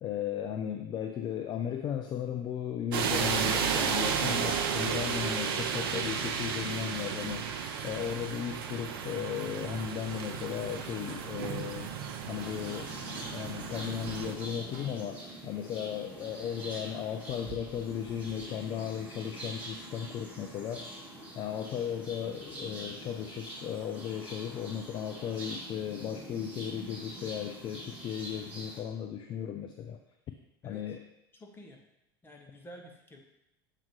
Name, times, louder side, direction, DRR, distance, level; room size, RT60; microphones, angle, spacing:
voice 1, 0.0-7.5 7.8-11.9 12.3-12.9 13.3-20.9 21.4-30.0 30.6-31.0, left 9 dB, 35° left, 6 dB, 0.4 m, -36 dB
sound 1, 2.9-14.3, right 7 dB, 70° right, 0.7 m, -33 dB
sound 2, 9.5-15.0, right 3 dB, 50° right, 1.3 m, -51 dB
sound 3, 12.4-28.8, right 1 dB, 10° right, 1.9 m, -44 dB
voice 2, 31.4-31.8 32.2-33.2, equal, 15° left, 2 dB, 1.2 m, -50 dB
7.1 x 2.9 x 4.6 m, 0.85 s
hypercardioid pair, 85°, 13 cm